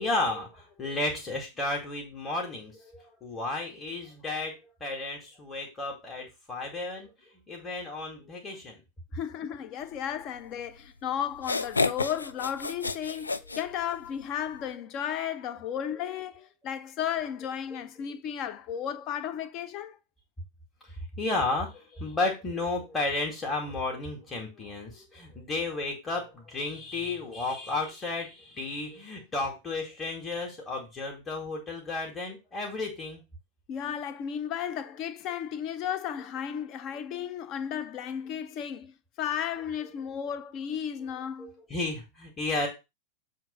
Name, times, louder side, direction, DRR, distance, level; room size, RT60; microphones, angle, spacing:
voice 1, 0.0-4.6 4.8-7.1 7.5-8.8 17.7-17.8 21.2-33.2 41.4-42.7, left 2 dB, 20° left, 2.0 m, -33 dB
voice 2, 9.1-20.0 33.7-41.5, left 9 dB, 40° left, 0.8 m, -34 dB
sound 1, 10.8-10.9 11.3-14.2, left 3 dB, 75° left, 0.4 m, -30 dB
7.2 x 2.9 x 5.6 m
figure-of-eight pair, 90°, 0 cm